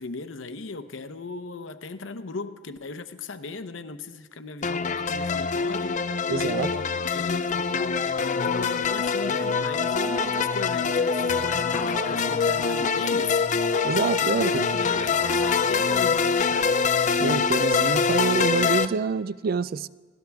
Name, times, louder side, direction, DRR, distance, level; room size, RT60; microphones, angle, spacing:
voice 1, 0.0-6.8 7.1-8.0 8.4-13.4 14.2-16.8, left 3 dB, 85° left, 0.8 m, -37 dB
sound 1, 4.6-18.9, left 5 dB, 40° left, 0.5 m, -24 dB
voice 2, 6.3-6.7 13.8-14.7 17.2-19.9, right 5 dB, 50° right, 0.4 m, -26 dB
Alarm, 8.9-16.0, right 1 dB, 15° right, 0.9 m, -37 dB
29.0 x 13.0 x 3.5 m
head